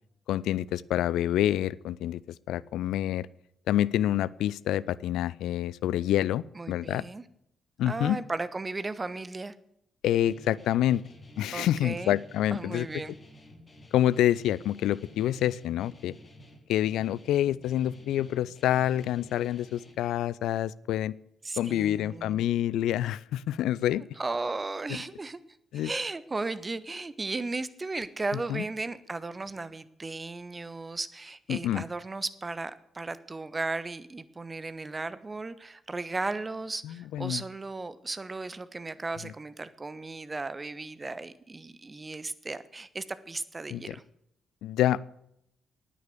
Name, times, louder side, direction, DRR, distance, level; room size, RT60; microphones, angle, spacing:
voice 1, 0.3-2.2 2.5-3.3 3.7-7.0 7.8-8.2 10.0-11.0 11.4-12.9 13.9-16.1 16.7-21.1 21.6-24.0 25.7-25.9 28.5-28.6 31.5-31.8 36.8-37.4 39.2-39.3 43.7-43.9 44.6-45.0, left 12 dB, 65° left, 20 dB, 0.4 m, -27 dB
voice 2, 6.5-7.2 7.9-9.5 11.5-12.2 12.5-13.1 21.4-22.4 23.9-25.4 25.7-44.0, right 3 dB, 30° right, 15 dB, 1.1 m, -35 dB
Guitar, 10.2-19.9, left 1 dB, 35° left, 4.0 m, -52 dB
11.0 x 9.6 x 8.3 m, 0.76 s
figure-of-eight pair, 40°, 0 cm